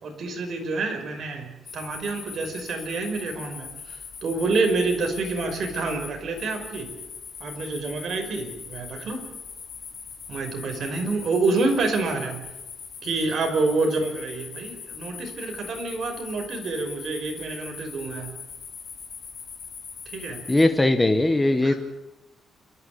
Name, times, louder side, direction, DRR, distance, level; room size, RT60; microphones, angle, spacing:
voice 1, 0.0-6.9 7.4-9.2 10.3-12.4 13.0-18.3 20.1-20.4 21.6-21.8, right 3 dB, 50° right, 4 dB, 5.5 m, -27 dB
sound 1, 1.7-20.6, left 6 dB, 50° left, 7.4 m, -41 dB
voice 2, 20.5-21.7, left 2 dB, 10° left, 7 dB, 1.5 m, -19 dB
28.5 x 14.5 x 8.6 m, 0.96 s
cardioid pair, 140°, 0 cm